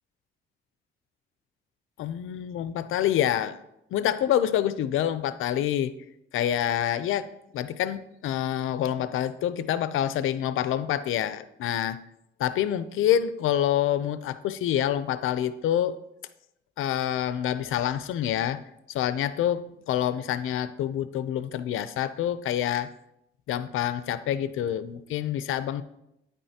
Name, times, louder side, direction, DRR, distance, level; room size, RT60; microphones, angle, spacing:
voice 1, 2.0-3.6 3.9-5.9 6.3-12.0 12.4-16.0 16.8-18.6 18.9-22.9 23.5-25.8, left 11 dB, 80° left, 14 dB, 0.5 m, -27 dB
9.5 x 8.9 x 2.8 m, 0.83 s
cardioid pair, 130°, 21 cm